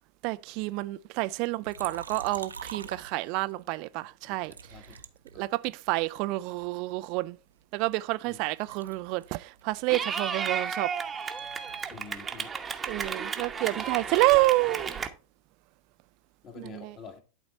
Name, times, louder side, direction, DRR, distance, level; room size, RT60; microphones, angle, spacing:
voice 1, 0.2-4.5 5.4-7.4 7.7-10.9 12.9-14.9, right 21 dB, 45° right, 0.3 m, -28 dB
Liquid, 1.6-3.6 4.4-6.0 6.6-8.3 8.6-12.3 12.5-14.2, right 5 dB, 75° right, 0.6 m, -46 dB
voice 2, 4.2-5.0 5.3-5.5 8.2-8.4 11.9-12.5 16.4-17.2, left 5 dB, 30° left, 1.7 m, -47 dB
Clapping / Cheering, 9.9-15.1, right 6 dB, 15° right, 0.9 m, -33 dB
11.5 x 3.9 x 4.2 m
figure-of-eight pair, 90°, 0 cm